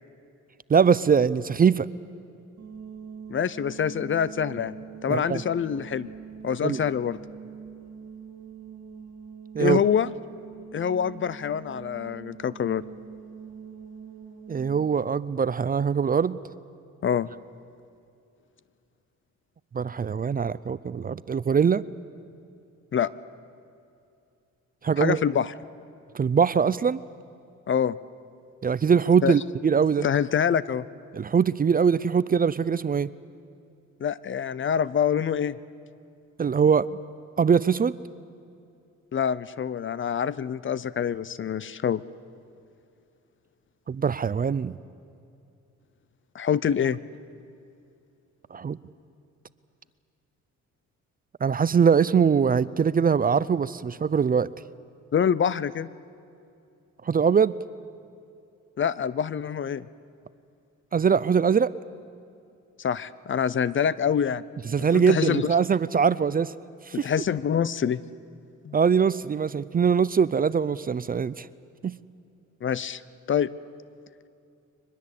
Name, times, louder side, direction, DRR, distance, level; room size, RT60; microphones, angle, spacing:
voice 1, 0.7-1.9 5.1-5.4 6.6-6.8 9.5-9.8 14.5-16.4 19.7-21.8 24.8-25.2 26.1-27.0 28.6-30.1 31.1-33.1 36.4-36.9 37.4-37.9 43.9-44.7 48.5-48.8 51.4-54.5 57.1-57.5 60.9-61.7 64.7-66.5 66.9-67.1 68.7-71.5 71.8-71.9, right 6 dB, 30° right, 18 dB, 0.5 m, -22 dB
sound 1, 2.6-14.9, right 6 dB, 50° right, 3.3 m, -43 dB
voice 2, 3.3-4.8 5.0-6.1 6.4-7.2 9.6-10.1 10.7-12.8 17.0-17.3 22.9-23.1 25.0-25.5 27.7-28.0 29.2-29.3 30.0-30.9 34.0-35.6 39.1-42.0 46.3-47.0 55.1-55.9 58.8-59.9 62.8-64.4 64.8-65.5 66.9-68.0 68.6-68.8 72.6-73.0 73.3-73.5, left 8 dB, 40° left, 19 dB, 0.7 m, -25 dB
24.0 x 21.0 x 8.4 m, 2.6 s
cardioid pair, 90°, 30 cm